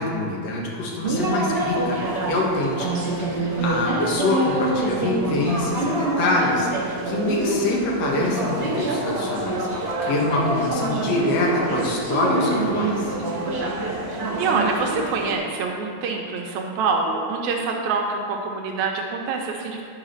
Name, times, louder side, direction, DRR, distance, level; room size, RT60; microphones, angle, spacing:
voice 1, 0.0-13.2, left 2 dB, 65° left, -2 dB, 2.4 m, -25 dB
sound 1, 1.0-15.3, right 2 dB, 40° right, 0.9 m, -26 dB
voice 2, 3.6-4.0 13.4-13.8 14.1-19.8, right 4 dB, 80° right, 1 dB, 2.1 m, -26 dB
9.6 x 4.9 x 6.4 m, 2.2 s
omnidirectional pair, 3.4 m